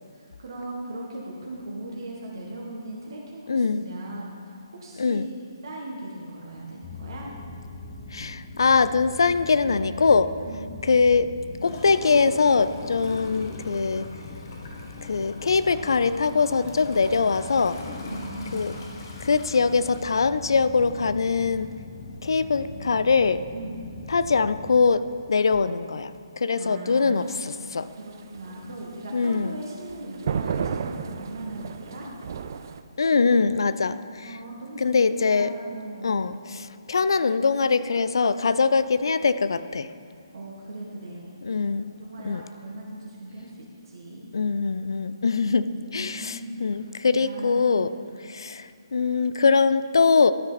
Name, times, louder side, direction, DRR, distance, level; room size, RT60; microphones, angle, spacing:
voice 1, 0.1-7.3 10.4-10.7 18.1-18.8 23.5-23.8 26.5-27.3 28.0-32.1 34.2-35.0 35.3-36.3 40.3-41.4 41.8-43.6 43.8-44.3 45.5-48.0, right 2 dB, 60° right, -3 dB, 1.5 m, -39 dB
voice 2, 3.5-3.9 5.0-5.2 8.1-10.3 10.8-11.3 11.6-14.1 15.0-17.8 18.5-18.7 19.2-21.7 22.2-23.4 24.1-26.1 26.4-27.8 29.1-29.6 33.0-34.4 34.8-35.5 36.0-39.9 41.4-41.9 42.2-42.4 44.3-47.9 48.3-48.6 48.9-50.3, left 4 dB, 60° left, 14 dB, 0.4 m, -22 dB
sound 1, 6.8-24.8, left 2 dB, 20° left, 1.0 m, -41 dB
Gurgling / Toilet flush, 11.6-21.0 21.5-21.6, left 2 dB, 45° left, 1.3 m, -43 dB
sound 2, 27.2-32.8, right 6 dB, 45° right, 0.4 m, -33 dB
12.5 x 6.4 x 4.1 m, 2.3 s
figure-of-eight pair, 140°, 3 cm